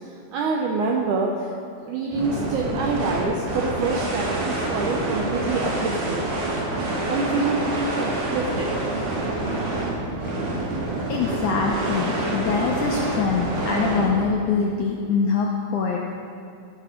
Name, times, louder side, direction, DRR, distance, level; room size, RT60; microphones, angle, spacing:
voice 1, 0.3-1.3 1.9-6.2 7.1-8.7, right 4 dB, 80° right, 0 dB, 1.7 m, -26 dB
sound 1, 2.1-14.3, right 2 dB, 65° right, 3.4 m, -27 dB
voice 2, 11.1-16.0, left 5 dB, 85° left, -1 dB, 1.8 m, -24 dB
15.5 x 5.9 x 5.0 m, 2.4 s
omnidirectional pair, 4.4 m